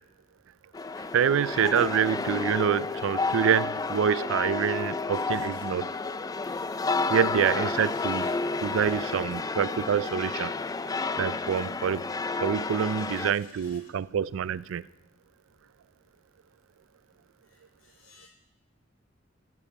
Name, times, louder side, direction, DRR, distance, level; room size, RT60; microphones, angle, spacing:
sound 1, 0.7-13.3, left 3 dB, 20° left, 0.3 m, -31 dB
voice 1, 1.0-5.9 7.1-8.3 8.6-10.5 11.2-12.1 12.4-14.9, right 8 dB, 90° right, 0.4 m, -26 dB
voice 2, 5.1-5.8 7.9-8.6 12.7-13.8 17.5-18.3, left 4 dB, 80° left, 3.8 m, -55 dB
12.5 x 8.9 x 5.8 m
head